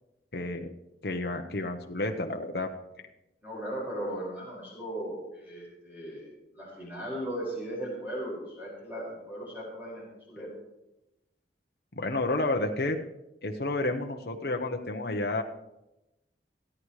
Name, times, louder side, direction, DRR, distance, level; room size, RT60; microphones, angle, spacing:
voice 1, 0.3-0.7 1.0-2.7 11.9-13.0 13.4-15.4, left 2 dB, 60° left, 3 dB, 0.9 m, -30 dB
voice 2, 3.4-6.3 6.5-10.5, right 1 dB, 10° right, -5 dB, 5.5 m, -37 dB
28.5 x 9.8 x 3.2 m, 0.93 s
head